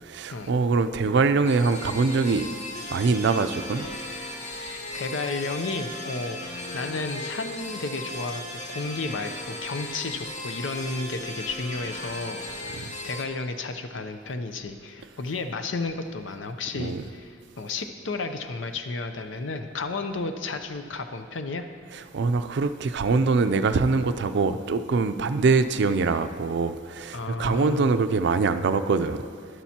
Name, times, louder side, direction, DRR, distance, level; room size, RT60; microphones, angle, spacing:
voice 1, 0.1-2.5 2.9-3.9 12.8-12.9 16.7-17.0 22.1-29.2, right 4 dB, 65° right, 0.4 m, -23 dB
sound 1, 1.5-13.2, left 1 dB, 40° left, 0.9 m, -37 dB
voice 2, 4.6-8.4 8.7-21.6 27.1-27.9, left 3 dB, 75° left, 0.6 m, -32 dB
11.5 x 11.5 x 2.9 m
head